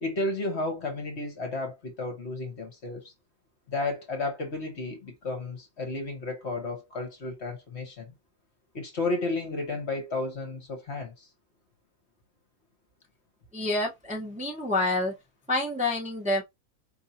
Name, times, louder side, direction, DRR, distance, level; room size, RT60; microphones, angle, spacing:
voice 1, 0.0-3.1 3.7-8.1 8.7-11.3, left 2 dB, 50° left, 1.2 m, -32 dB
voice 2, 13.5-15.2 15.5-16.4, left 2 dB, 5° right, 0.8 m, -28 dB
4.7 x 2.6 x 2.8 m
omnidirectional pair, 1.6 m